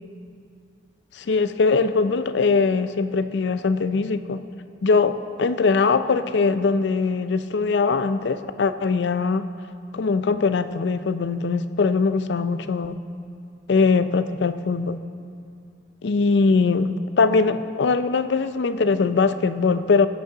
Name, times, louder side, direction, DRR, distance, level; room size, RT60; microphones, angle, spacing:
voice 1, 1.2-4.4 4.8-9.5 9.9-13.0 13.7-15.0 16.0-20.1, left 4 dB, 75° left, 12 dB, 0.5 m, -21 dB
16.5 x 8.2 x 3.8 m, 2.3 s
head